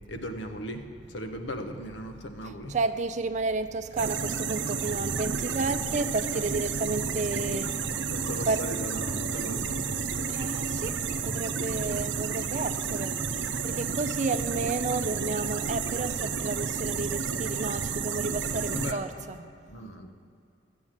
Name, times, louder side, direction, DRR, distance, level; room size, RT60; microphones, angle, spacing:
voice 1, 0.1-2.8 6.3-6.5 8.1-9.8 18.7-19.0 19.7-20.1, equal, 85° left, 5 dB, 1.0 m, -37 dB
voice 2, 2.7-8.6 10.3-19.5, right 3 dB, 40° right, 10 dB, 0.5 m, -32 dB
sound 1, 4.0-18.9, right 5 dB, 90° right, 0.6 m, -31 dB
13.0 x 8.2 x 7.5 m, 2.3 s
head